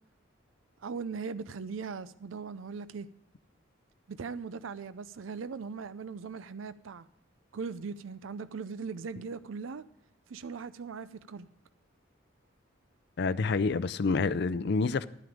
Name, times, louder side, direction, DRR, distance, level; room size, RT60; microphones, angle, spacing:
voice 1, 0.8-3.1 4.1-7.1 7.5-9.8 10.3-11.5, right 5 dB, 80° right, 0.5 m, -39 dB
voice 2, 13.2-15.1, left 4 dB, 55° left, 0.5 m, -28 dB
12.0 x 9.4 x 4.9 m
head